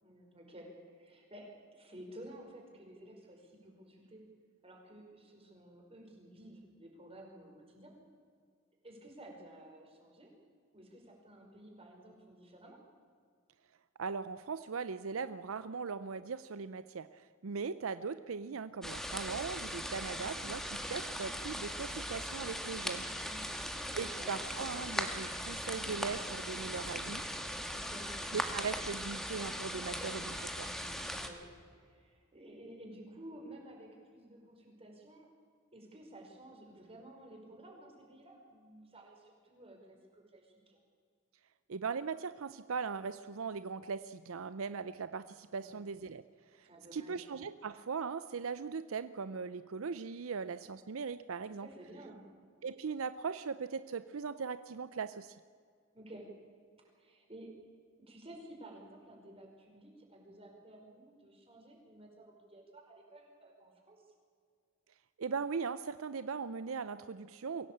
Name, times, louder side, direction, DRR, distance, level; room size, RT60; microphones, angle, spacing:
voice 1, 0.0-0.7 0.9-4.2 4.6-7.9 8.8-10.3 10.7-12.8 23.0-23.8 24.0-24.5 27.7-28.1 29.8-30.0 31.1-31.4 31.7-35.3 35.7-40.8 45.5-45.8 46.6-47.3 51.6-52.2 55.9-56.2 57.0-57.5 58.1-64.0, right 1 dB, 30° right, 1 dB, 5.1 m, -53 dB
voice 2, 14.0-23.1 23.4-23.6 24.0-27.2 28.3-30.7 41.7-46.2 46.5-51.7 52.6-55.4 65.2-67.7, right 5 dB, 75° right, 13 dB, 0.6 m, -39 dB
sound 1, 18.8-31.3, equal, ahead, 1.8 m, -39 dB
23.5 x 16.5 x 8.6 m, 2.1 s
head